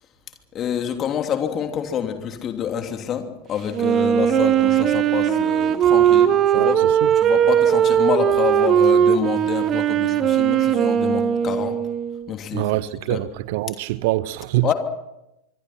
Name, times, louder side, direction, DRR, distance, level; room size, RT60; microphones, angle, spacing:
voice 1, 0.5-6.8 7.2-11.8 12.3-12.7 13.1-13.2 14.6-14.7, left 8 dB, 30° left, 3.1 m, -27 dB
Wind instrument woodwind instrument, 3.7-12.3, right 9 dB, 30° right, 1.2 m, -18 dB
voice 2, 6.5-7.1 12.5-14.7, right 17 dB, 50° right, 0.7 m, -24 dB
25.5 x 23.5 x 5.9 m
figure-of-eight pair, 90°, 0 cm